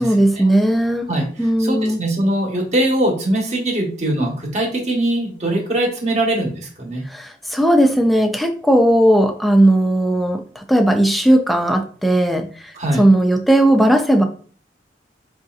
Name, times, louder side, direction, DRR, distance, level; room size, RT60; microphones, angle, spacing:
voice 1, 0.0-1.1 1.4-2.0 7.1-10.4 10.7-12.5 13.0-14.2, right 1 dB, ahead, 5 dB, 0.3 m, -16 dB
voice 2, 1.1-7.0 12.7-13.0, right 1 dB, 40° right, 1 dB, 1.1 m, -21 dB
4.8 x 2.6 x 2.4 m, 0.43 s
head